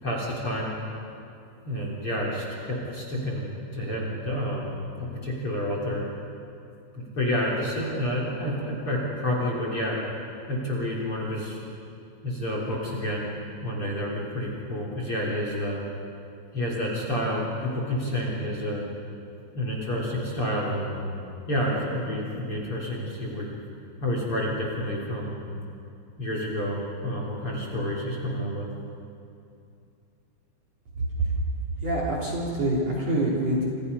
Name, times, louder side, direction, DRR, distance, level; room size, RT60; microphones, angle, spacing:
voice 1, 0.0-0.8 1.6-6.0 6.9-10.0 10.5-11.6 12.2-13.4 13.6-15.8 16.5-18.9 19.5-21.0 21.5-23.5 24.0-25.5 26.2-28.7, equal, 30° left, -2 dB, 3.8 m, -29 dB
voice 2, 31.8-33.7, right 1 dB, 35° right, -3 dB, 3.7 m, -25 dB
28.0 x 28.0 x 5.6 m, 2.6 s
omnidirectional pair, 5.9 m